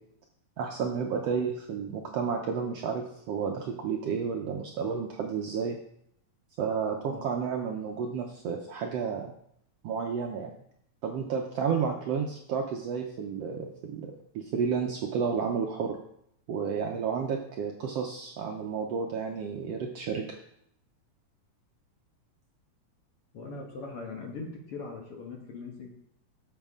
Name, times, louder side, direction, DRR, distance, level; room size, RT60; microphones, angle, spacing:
voice 1, 0.6-5.8 6.6-9.3 9.8-10.5 11.0-16.0 16.5-20.4, right 6 dB, 70° right, 1 dB, 1.5 m, -31 dB
voice 2, 23.3-25.9, left 3 dB, 55° left, 0 dB, 2.1 m, -40 dB
13.0 x 7.0 x 3.7 m, 0.71 s
omnidirectional pair, 3.6 m